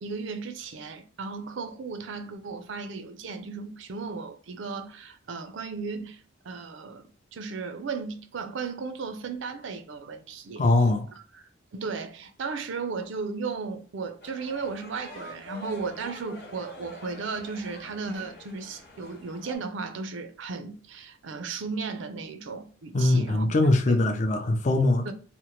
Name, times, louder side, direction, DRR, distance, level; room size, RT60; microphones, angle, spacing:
voice 1, 0.0-10.7 11.7-23.5 23.9-24.0 25.1-25.2, right 4 dB, 65° right, 0.4 m, -35 dB
voice 2, 10.6-11.1 22.9-25.1, left 2 dB, 35° left, 0.4 m, -22 dB
sound 1, 14.2-19.6, left 2 dB, 50° left, 0.9 m, -46 dB
2.9 x 2.1 x 2.9 m
head